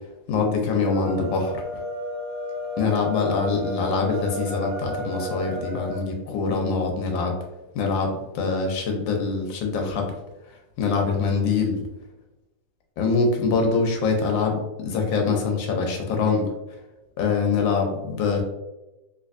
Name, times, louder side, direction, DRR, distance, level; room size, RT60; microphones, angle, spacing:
voice 1, 0.3-1.6 2.8-7.3 7.7-10.1 10.8-11.8 13.0-16.5 17.2-18.4, left 4 dB, 70° left, 2 dB, 1.2 m, -24 dB
sound 1, 0.8-6.1, right 1 dB, 90° right, 1.7 m, -32 dB
3.3 x 3.0 x 2.4 m, 1.0 s
omnidirectional pair, 2.4 m